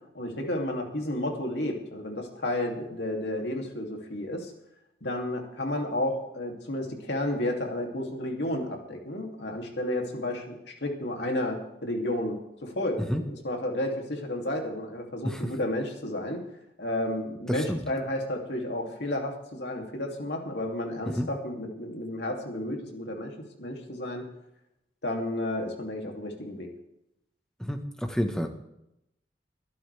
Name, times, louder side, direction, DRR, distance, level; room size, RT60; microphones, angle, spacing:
voice 1, 0.1-4.5 5.0-16.4 16.8-23.3 23.6-24.3 25.0-26.7, left 1 dB, 75° left, 1 dB, 2.8 m, -32 dB
voice 2, 17.5-17.8 21.1-21.3 27.6-28.5, equal, 5° left, 5 dB, 1.3 m, -29 dB
22.5 x 11.5 x 3.5 m, 0.83 s
head